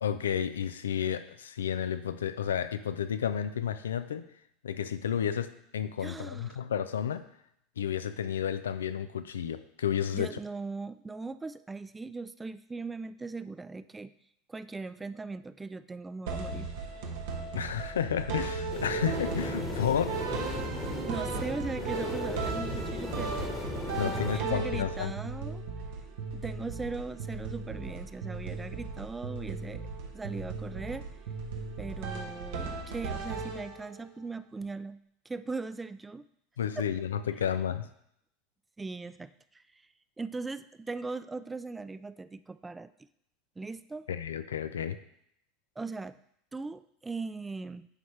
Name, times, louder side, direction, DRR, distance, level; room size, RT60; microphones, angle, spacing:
voice 1, 0.0-4.2 4.6-7.3 7.8-10.3 17.5-20.1 24.0-25.1 36.6-37.9 44.1-45.0, left 8 dB, 85° left, 12 dB, 0.4 m, -31 dB
voice 2, 6.0-6.6 10.1-14.1 14.5-16.7 21.1-23.3 24.0-25.6 26.3-29.9 30.1-31.1 31.8-35.0 35.3-36.2 36.8-36.9 38.8-39.8 40.2-42.9 43.6-44.1 45.8-46.2 46.5-47.9, right 3 dB, 15° right, 14 dB, 0.3 m, -39 dB
sound 1, 16.3-34.1, right 4 dB, 70° right, 1.0 m, -36 dB
sound 2, 18.7-24.4, left 3 dB, 25° left, 1.2 m, -37 dB
9.9 x 4.1 x 3.2 m, 0.73 s
hypercardioid pair, 90°, 0 cm